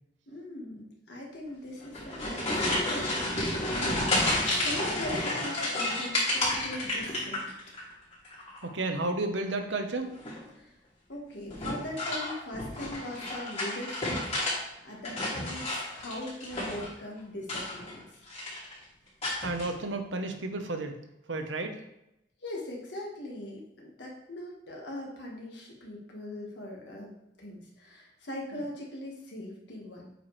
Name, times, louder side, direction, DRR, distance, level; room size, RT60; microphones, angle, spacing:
voice 1, 0.3-7.5 10.5-10.7 11.1-18.0 22.4-30.1, left 1 dB, 65° left, -2 dB, 1.5 m, -41 dB
sound 1, 1.8-7.8 8.1-8.7 10.1-10.5 11.5-14.6 14.9-16.9 17.4-18.0 18.3-18.7 19.2-19.7, left 1 dB, 35° left, 2.7 m, -31 dB
voice 2, 8.6-10.1 19.4-21.0 21.3-21.8 28.5-28.6, right 2 dB, 85° right, 6 dB, 0.9 m, -32 dB
7.9 x 4.8 x 3.2 m, 0.84 s
head